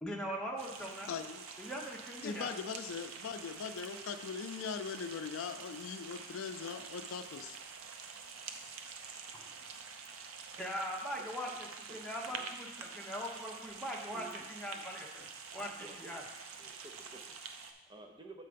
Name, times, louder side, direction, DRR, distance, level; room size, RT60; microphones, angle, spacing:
voice 1, 0.0-1.1 1.6-2.5 9.3-9.5 10.6-15.3 15.5-16.2, equal, 5° left, -2 dB, 0.9 m, -41 dB
Cola recorded with hydrophone, 0.6-17.7, right 5 dB, 80° right, 0.6 m, -47 dB
voice 2, 1.0-1.5 2.2-7.6, left 6 dB, 75° left, 10 dB, 0.4 m, -40 dB
voice 3, 15.6-16.2 16.6-18.5, right 2 dB, 20° right, 3 dB, 0.5 m, -53 dB
6.6 x 4.6 x 5.1 m, 1.0 s
head